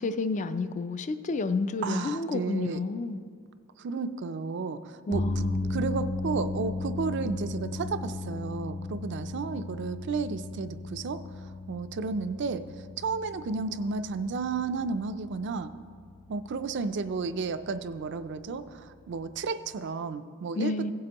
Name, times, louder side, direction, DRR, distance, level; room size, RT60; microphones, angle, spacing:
voice 1, 0.0-3.2 5.1-5.7 20.6-20.9, left 3 dB, 35° left, 0.3 m, -30 dB
voice 2, 1.8-2.8 3.8-12.6 13.0-15.7 16.3-20.9, right 4 dB, 55° right, 0.4 m, -33 dB
sound 1, 5.1-19.4, left 2 dB, 80° left, 2.6 m, -36 dB
16.5 x 7.7 x 3.0 m
head